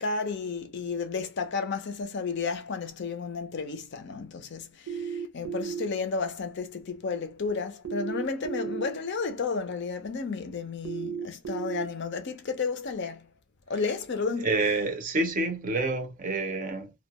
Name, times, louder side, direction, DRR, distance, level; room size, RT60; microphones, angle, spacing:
voice 1, 0.0-13.3 13.7-14.5, left 4 dB, 50° left, 0.5 m, -32 dB
sound 1, 4.9-5.9 7.8-8.9 10.8-11.9, right 7 dB, 85° right, 0.6 m, -33 dB
voice 2, 14.4-16.9, right 2 dB, 35° right, 0.5 m, -28 dB
2.2 x 2.2 x 2.8 m
head